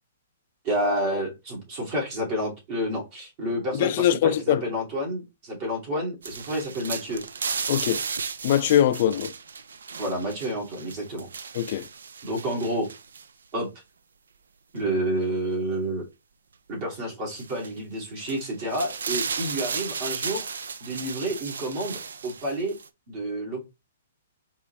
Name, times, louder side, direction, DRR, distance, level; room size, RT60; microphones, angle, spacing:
voice 1, 0.6-7.2 10.0-11.3 12.2-12.9 13.5-13.7 14.7-16.0 16.7-20.5 20.8-22.7 23.1-23.7, equal, 40° right, 2.5 m, -29 dB
voice 2, 3.8-4.7 7.7-8.0 8.4-9.3 11.5-11.9, left 10 dB, 45° left, 0.4 m, -22 dB
sound 1, 6.2-13.2 14.8-14.9 17.4-17.7 18.2-22.9, right 5 dB, 85° right, 0.4 m, -34 dB
4.6 x 3.0 x 3.1 m
hypercardioid pair, 155°, 0 cm